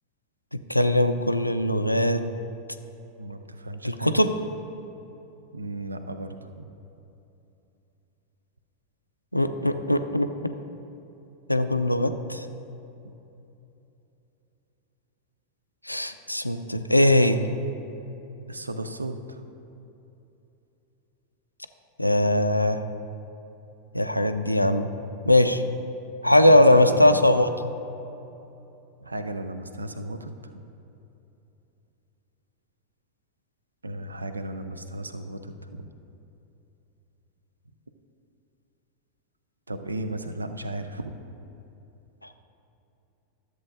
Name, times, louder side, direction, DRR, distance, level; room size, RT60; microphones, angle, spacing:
voice 1, 0.5-2.3 3.8-4.3 9.3-10.5 11.5-12.5 15.9-17.4 22.0-22.8 23.9-24.9 25.2-25.6 26.2-27.5, left 1 dB, 85° left, 9 dB, 0.4 m, -20 dB
voice 2, 3.2-4.2 5.5-6.7 18.5-19.4 26.2-27.2 29.0-30.5 33.8-35.9 39.7-41.1, right 1 dB, 80° right, 9 dB, 0.4 m, -35 dB
13.0 x 7.6 x 2.6 m, 2.9 s
figure-of-eight pair, 90°, 0 cm